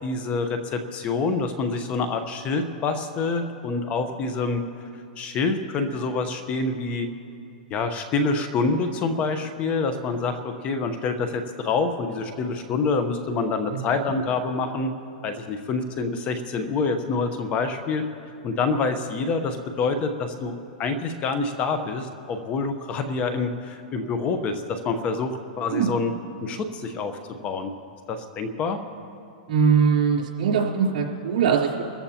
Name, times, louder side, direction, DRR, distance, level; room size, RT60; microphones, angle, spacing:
voice 1, 0.0-4.6 5.2-7.1 7.7-14.9 15.2-18.0 18.4-25.3 25.6-26.1 26.4-27.1 27.4-27.7 28.1-28.8, left 4 dB, 25° left, 8 dB, 0.9 m, -26 dB
voice 2, 29.5-31.9, right 6 dB, 70° right, -3 dB, 3.6 m, -21 dB
25.0 x 14.0 x 2.9 m, 2.5 s
hypercardioid pair, 145°, 5 cm